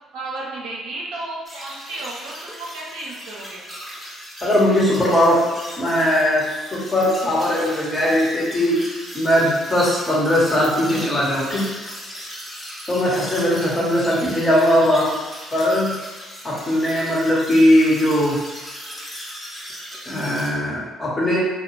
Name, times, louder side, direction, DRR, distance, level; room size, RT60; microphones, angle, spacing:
voice 1, 0.1-3.6, right 2 dB, 70° right, -3 dB, 0.6 m, -33 dB
sound 1, 1.5-20.5, equal, 10° left, 0.9 m, -37 dB
voice 2, 4.4-5.5 5.8-11.7 12.9-15.1 15.5-16.0 16.4-18.4 20.1-21.4, left 1 dB, 25° left, -5 dB, 1.1 m, -19 dB
2.4 x 2.1 x 3.1 m, 1.3 s
hypercardioid pair, 55°, 0 cm